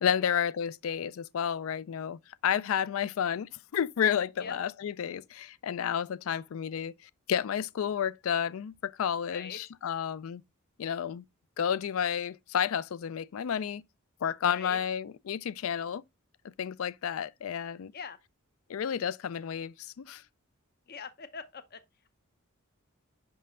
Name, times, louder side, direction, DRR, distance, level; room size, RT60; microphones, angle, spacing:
voice 1, 0.0-10.4 10.8-11.2 11.6-13.8 14.2-16.0 16.6-17.9 18.7-20.2, left 8 dB, 70° left, 0.4 m, -31 dB
voice 2, 9.3-9.6 14.5-14.8 17.9-18.2 20.9-21.8, left 6 dB, 45° left, 0.7 m, -42 dB
5.6 x 5.5 x 3.7 m
head